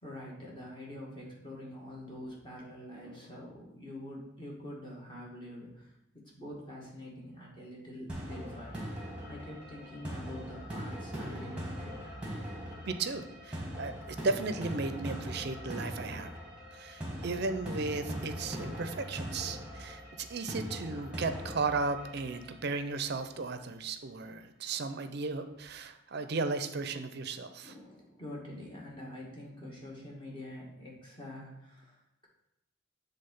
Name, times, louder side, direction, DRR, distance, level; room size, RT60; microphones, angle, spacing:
voice 1, 0.0-12.0 27.6-32.3, left 1 dB, 25° left, -4 dB, 1.8 m, -46 dB
sound 1, 8.1-23.1, equal, 5° right, 1.4 m, -41 dB
voice 2, 12.8-16.3 16.7-27.7, right 3 dB, 55° right, 9 dB, 0.5 m, -35 dB
7.7 x 3.6 x 5.3 m, 0.87 s
head